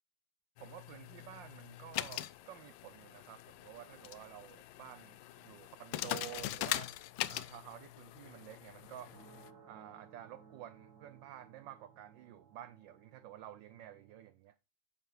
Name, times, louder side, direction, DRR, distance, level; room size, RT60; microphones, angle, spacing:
sound 1, 0.6-9.5, left 14 dB, 75° left, 1.2 m, -42 dB
voice 1, 0.6-6.9 7.3-9.1 9.7-14.6, right 12 dB, 75° right, 1.1 m, -51 dB
sound 2, 8.8-14.3, right 6 dB, 55° right, 2.0 m, -60 dB
8.8 x 7.5 x 3.2 m
omnidirectional pair, 2.4 m